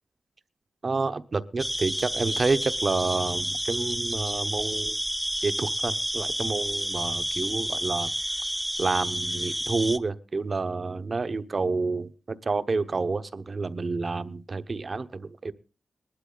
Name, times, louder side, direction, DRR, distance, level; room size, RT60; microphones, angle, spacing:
voice 1, 0.8-5.0 5.4-8.1 8.8-15.5, right 3 dB, 45° right, 12 dB, 0.9 m, -29 dB
sound 1, 1.6-10.0, equal, ahead, 0.9 m, -30 dB
19.5 x 12.0 x 3.9 m, 0.36 s
cardioid pair, 80°, 0 cm